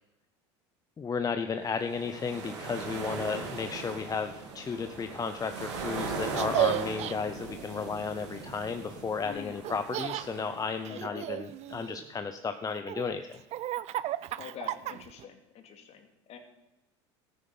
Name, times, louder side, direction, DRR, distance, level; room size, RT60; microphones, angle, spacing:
voice 1, 1.0-13.4, left 5 dB, 25° left, 8 dB, 0.8 m, -34 dB
sound 1, 1.7-11.0, right 4 dB, 85° right, 2.8 m, -39 dB
Laughter, 6.3-7.1 9.6-10.3 10.8-12.1 12.7-15.2, right 14 dB, 50° right, 0.5 m, -33 dB
voice 2, 9.2-9.6 10.9-11.2 14.3-16.4, left 7 dB, 50° left, 5 dB, 2.4 m, -45 dB
14.0 x 9.5 x 5.6 m, 0.93 s
hypercardioid pair, 85°, 14 cm